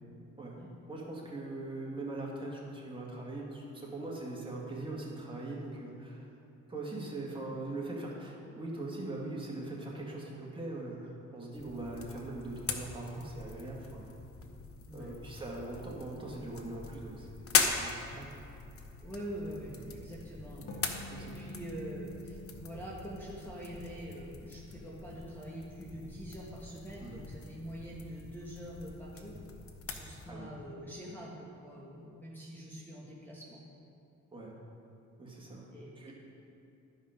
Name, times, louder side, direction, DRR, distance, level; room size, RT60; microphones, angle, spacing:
voice 1, 0.9-6.3 6.7-14.1 14.9-18.3 19.6-19.8 21.1-21.5 27.0-27.2 30.3-30.5 34.3-34.5 35.2-35.7 36.0-36.1, right 2 dB, 15° right, -4 dB, 2.0 m, -41 dB
sound 1, 11.5-30.3, left 5 dB, 50° left, 0.9 m, -40 dB
voice 2, 19.0-29.4 29.9-33.6 35.7-36.1, equal, 5° left, -6 dB, 1.6 m, -45 dB
sound 2, 20.7-24.2, left 1 dB, 80° left, 1.5 m, -49 dB
12.5 x 5.5 x 5.1 m, 2.7 s
cardioid pair, 90°, 30 cm